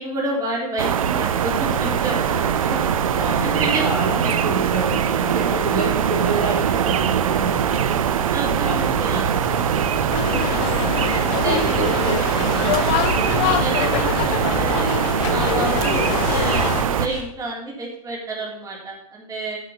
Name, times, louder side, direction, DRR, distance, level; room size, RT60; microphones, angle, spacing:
voice 1, 0.0-2.8 3.4-3.9 4.2-4.5 8.3-9.3 11.2-12.1 13.3-19.6, right 2 dB, 20° right, -2 dB, 3.5 m, -29 dB
sound 1, 0.8-17.1, right 9 dB, 65° right, 0.7 m, -22 dB
sound 2, 1.1-17.2, right 1 dB, 40° right, 3.4 m, -32 dB
voice 2, 3.2-8.0 8.6-9.2 11.4-12.8, right 1 dB, 80° right, -2 dB, 4.1 m, -29 dB
sound 3, 10.1-16.8, left 13 dB, 40° left, 0.7 m, -25 dB
10.5 x 6.6 x 7.1 m, 0.68 s
figure-of-eight pair, 100°, 19 cm